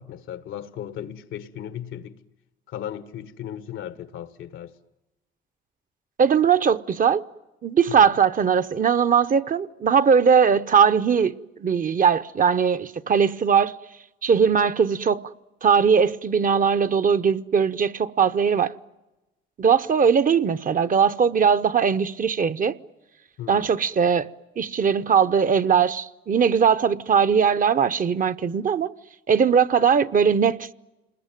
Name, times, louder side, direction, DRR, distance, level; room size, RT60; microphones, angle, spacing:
voice 1, 0.0-2.2 2.7-4.7 7.9-8.1 23.4-23.7, left 10 dB, 85° left, 1.4 m, -36 dB
voice 2, 6.2-7.2 7.6-11.3 11.6-13.7 14.2-15.2 15.6-18.7 19.6-22.7 23.5-24.3 24.6-28.9 29.3-30.7, right 6 dB, 45° right, 0.9 m, -20 dB
28.5 x 21.0 x 9.2 m
cardioid pair, 90°, 20 cm